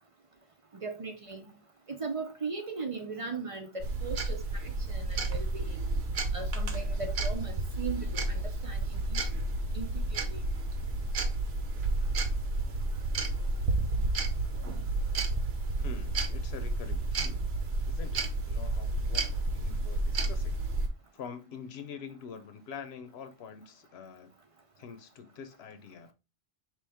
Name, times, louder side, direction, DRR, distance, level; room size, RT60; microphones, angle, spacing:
voice 1, 0.7-1.4 1.9-5.8 6.3-9.3 9.7-10.4, right 4 dB, 40° right, 0.5 m, -38 dB
sound 1, 3.8-20.9, right 2 dB, 80° right, 1.0 m, -31 dB
voice 2, 15.8-17.5 17.9-20.6 21.1-24.3 24.8-26.1, left 6 dB, 85° left, 0.9 m, -46 dB
4.6 x 3.0 x 3.4 m
omnidirectional pair, 1.0 m